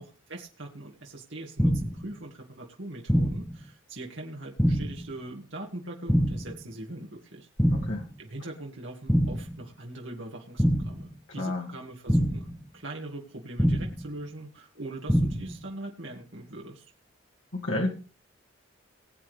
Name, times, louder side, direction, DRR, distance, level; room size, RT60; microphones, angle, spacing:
voice 1, 0.0-7.5 8.2-16.9, right 2 dB, 70° right, 0 dB, 2.1 m, -41 dB
sound 1, 1.6-2.1 3.1-3.6 4.6-5.1 6.1-6.6 7.6-8.1 9.1-9.6 10.6-11.1 12.1-12.6 13.6-14.1 15.1-15.6, equal, 5° left, 1.2 m, -25 dB
voice 2, 7.7-8.0 11.4-11.7 17.5-17.9, left 2 dB, 90° left, 0 dB, 2.4 m, -30 dB
20.5 x 8.4 x 3.4 m, 0.35 s
head